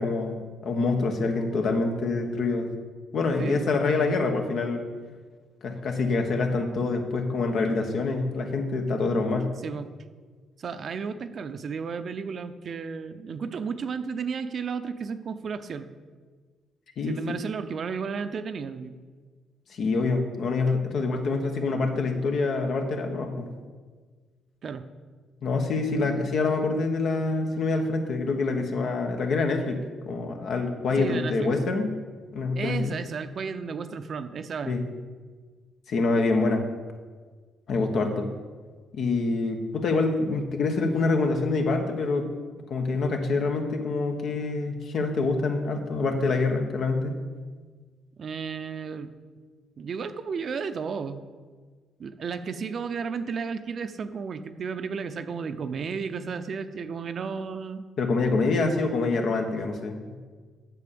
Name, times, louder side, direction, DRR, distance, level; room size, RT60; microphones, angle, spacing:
voice 1, 0.0-2.7 3.1-4.8 5.6-9.5 17.0-17.4 19.7-23.5 25.4-31.9 32.3-32.9 34.6-34.8 35.9-36.6 37.7-38.3 38.9-42.3 42.7-47.2 58.0-60.1, left 3 dB, 65° left, 4 dB, 1.4 m, -26 dB
voice 2, 9.6-9.9 10.6-15.9 17.1-19.0 24.6-24.8 31.0-31.5 32.5-34.8 48.2-49.1 49.8-51.2 52.0-57.8, right 5 dB, 50° right, 10 dB, 0.7 m, -33 dB
8.4 x 6.9 x 6.9 m, 1.5 s
cardioid pair, 90°, 0 cm